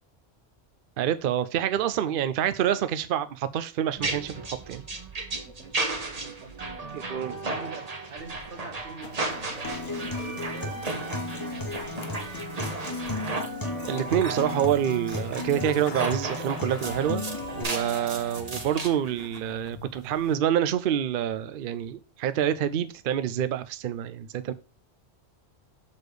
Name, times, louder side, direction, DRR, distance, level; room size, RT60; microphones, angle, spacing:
voice 1, 1.0-4.8 6.9-7.3 13.9-17.2 17.6-24.5, right 10 dB, 60° right, 0.6 m, -27 dB
sound 1, 4.0-18.9, right 3 dB, 35° right, 1.1 m, -34 dB
voice 2, 5.4-12.9 13.1-13.3, right 5 dB, 85° right, 1.6 m, -46 dB
sound 2, 9.0-20.4, left 4 dB, 60° left, 1.1 m, -46 dB
Acoustic guitar, 9.6-17.6, left 3 dB, 20° left, 0.8 m, -35 dB
6.6 x 4.1 x 4.9 m
omnidirectional pair, 1.1 m